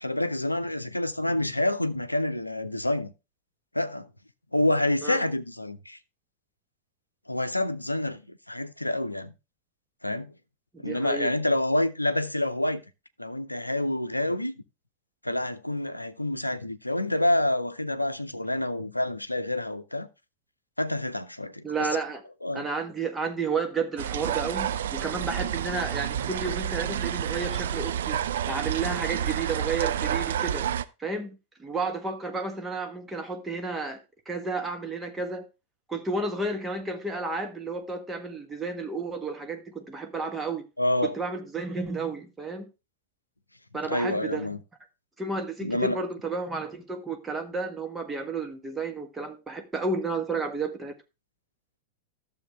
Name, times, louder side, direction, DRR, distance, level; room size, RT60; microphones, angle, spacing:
voice 1, 0.0-3.1 3.7-4.1 4.5-6.0 7.3-8.2 8.5-9.3 10.0-10.3 10.8-12.8 13.2-14.5 15.2-20.1 20.8-21.9 22.4-22.6 40.8-41.1 43.9-44.6 45.6-46.0, left 1 dB, 85° left, 0.6 m, -27 dB
voice 2, 10.7-11.3 21.6-22.2 22.5-28.2 28.5-30.6 31.0-34.0 34.2-35.5 35.9-40.6 41.0-42.6 43.7-44.5 45.2-50.9, right 3 dB, 15° right, 1.6 m, -32 dB
sound 1, 24.0-30.8, right 9 dB, 60° right, 0.5 m, -29 dB
12.5 x 7.0 x 3.4 m
figure-of-eight pair, 90°, 0 cm